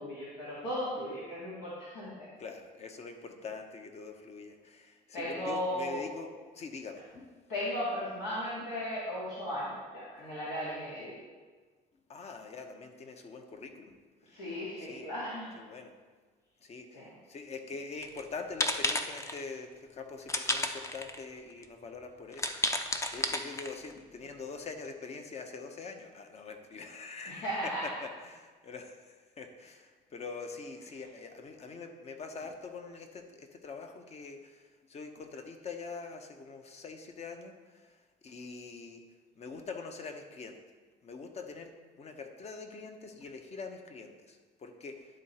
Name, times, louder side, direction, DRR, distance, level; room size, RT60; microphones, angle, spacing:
voice 1, 0.0-2.3 5.1-6.0 7.5-11.1 14.3-15.5 16.9-17.1 27.2-27.8, equal, 90° left, -9 dB, 2.0 m, -36 dB
voice 2, 2.4-7.3 12.1-14.0 14.8-15.1 15.6-15.9 16.6-17.0 17.3-22.5 22.7-34.6 34.9-37.5 38.2-39.0 39.4-40.6 41.0-41.7 42.0-45.1, left 4 dB, 40° left, 6 dB, 0.8 m, -44 dB
sound 1, 18.0-18.2 18.6-19.4 20.3-21.2 21.6-21.7 22.3-23.9, left 2 dB, 15° left, 0.5 m, -32 dB
11.0 x 3.8 x 4.2 m, 1.4 s
cardioid pair, 110°, 17 cm